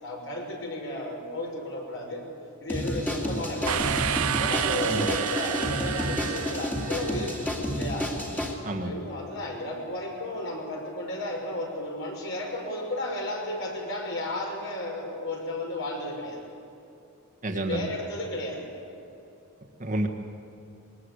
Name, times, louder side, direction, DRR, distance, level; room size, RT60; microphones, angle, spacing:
voice 1, 0.0-2.2 2.6-4.0 4.4-8.1 8.7-16.4 17.5-18.7, left 1 dB, 60° left, 0 dB, 5.8 m, -33 dB
sound 1, 2.7-8.5, equal, 10° left, 2.5 m, -31 dB
sound 2, 3.7-7.4, right 8 dB, 90° right, 0.7 m, -30 dB
voice 2, 17.4-17.9 19.8-20.1, right 1 dB, 35° right, 3 dB, 1.6 m, -29 dB
22.0 x 19.5 x 8.3 m, 2.7 s
head